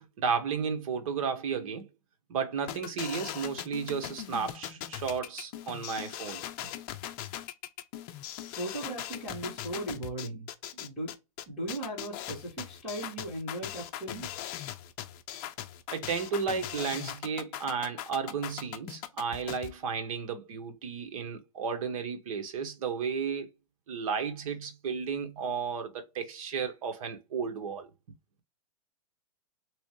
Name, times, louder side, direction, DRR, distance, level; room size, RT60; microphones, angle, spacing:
voice 1, 0.0-1.9 2.3-6.4 15.9-23.5 23.9-27.9, right 6 dB, 65° right, 1.1 m, -33 dB
sound 1, 2.7-19.7, left 12 dB, 35° left, 0.6 m, -40 dB
voice 2, 8.5-10.5 10.8-11.1 11.5-14.3, right 1 dB, 5° right, 2.4 m, -37 dB
3.7 x 3.0 x 3.1 m
hypercardioid pair, 140°, 19 cm